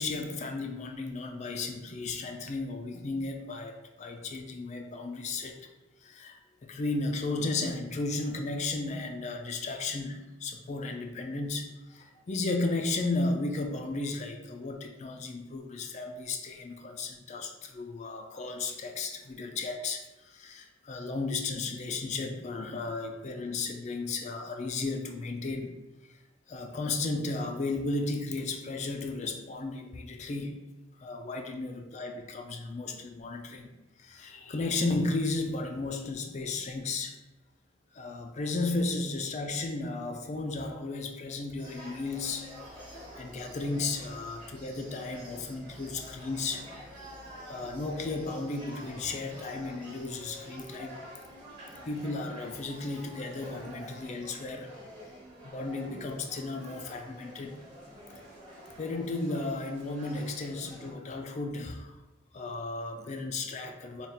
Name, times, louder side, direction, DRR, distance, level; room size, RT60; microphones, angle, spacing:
voice 1, 0.0-5.6 6.0-25.7 26.0-26.2 26.5-30.6 31.0-33.7 34.0-37.2 37.9-46.7 47.5-51.0 51.9-54.7 55.4-57.6 58.7-61.9 62.3-64.1, left 3 dB, 35° left, 4 dB, 0.4 m, -34 dB
sound 1, 41.6-60.9, equal, 25° right, 1.1 m, -48 dB
3.6 x 2.3 x 4.2 m, 1.0 s
head